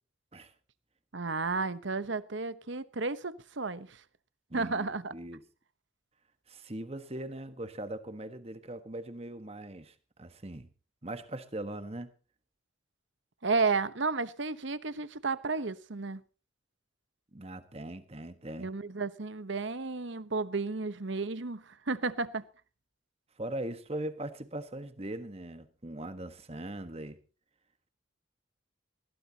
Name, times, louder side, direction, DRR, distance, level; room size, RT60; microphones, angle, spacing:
voice 1, 1.1-4.0 4.5-5.1 13.4-16.2 18.6-22.4, right 4 dB, 65° right, 1.0 m, -32 dB
voice 2, 4.5-5.4 6.5-10.7 11.0-12.1 17.3-18.7 23.4-27.2, right 1 dB, 30° right, 1.4 m, -40 dB
20.5 x 16.5 x 2.9 m
head